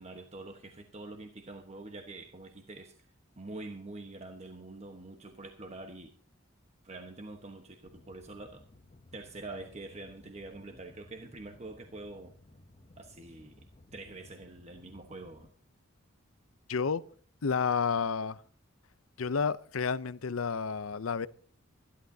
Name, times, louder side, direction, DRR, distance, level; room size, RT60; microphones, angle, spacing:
voice 1, 0.0-3.1 3.4-6.1 6.8-8.6 9.1-12.3 13.0-13.7 13.9-15.5, right 2 dB, 35° right, 1.2 m, -45 dB
sound 1, 7.9-15.5, left 2 dB, 30° left, 0.8 m, -58 dB
voice 2, 16.7-17.0 17.4-18.4 19.2-21.3, left 5 dB, 90° left, 0.6 m, -30 dB
26.0 x 11.5 x 2.8 m
head